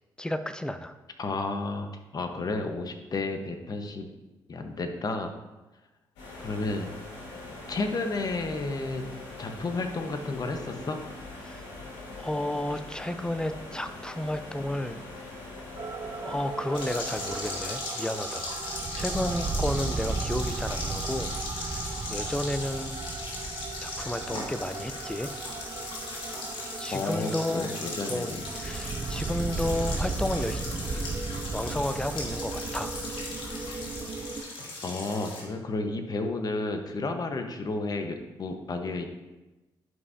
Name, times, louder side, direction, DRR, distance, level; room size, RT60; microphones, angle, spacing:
voice 1, 0.2-0.9 11.4-11.6 12.1-15.0 16.2-21.3 21.6-21.8 22.1-23.0 23.8-25.3 26.8-27.7 28.1-30.6 30.9-32.9, left 1 dB, 10° left, 10 dB, 0.6 m, -32 dB
voice 2, 1.2-4.1 4.5-5.3 6.4-6.9 7.7-9.0 9.4-11.0 26.9-28.5 34.8-39.1, left 3 dB, 45° left, 6 dB, 1.1 m, -32 dB
sound 1, 6.2-17.7, left 2 dB, 90° left, 2.3 m, -42 dB
sound 2, 15.8-34.4, right 4 dB, 40° right, 0.7 m, -35 dB
sound 3, 16.7-35.4, left 2 dB, 65° left, 2.1 m, -38 dB
11.0 x 5.5 x 2.7 m, 1.1 s
supercardioid pair, 55°, 9 cm